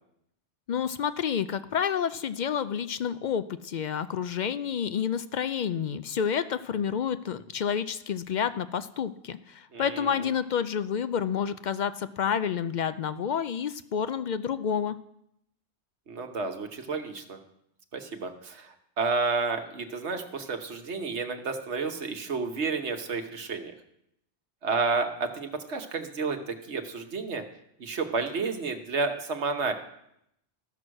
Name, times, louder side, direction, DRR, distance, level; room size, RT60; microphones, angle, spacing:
voice 1, 0.7-15.0, left 7 dB, 60° left, 13 dB, 0.5 m, -29 dB
voice 2, 9.7-10.3 16.1-17.4 17.9-23.7 24.6-27.4 27.8-29.7, right 4 dB, 75° right, 5 dB, 1.3 m, -31 dB
14.0 x 6.2 x 6.4 m, 0.78 s
omnidirectional pair, 1.2 m